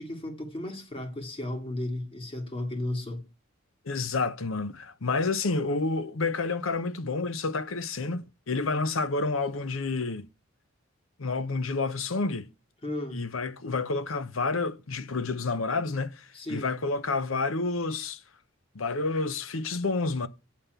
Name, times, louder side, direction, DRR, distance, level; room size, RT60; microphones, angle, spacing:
voice 1, 0.0-3.2 12.8-13.3 16.3-16.8, left 1 dB, 30° left, 2.1 m, -34 dB
voice 2, 3.9-10.3 11.2-12.5 13.1-18.2 18.7-20.3, left 3 dB, 85° left, 0.8 m, -29 dB
8.6 x 5.8 x 8.0 m
head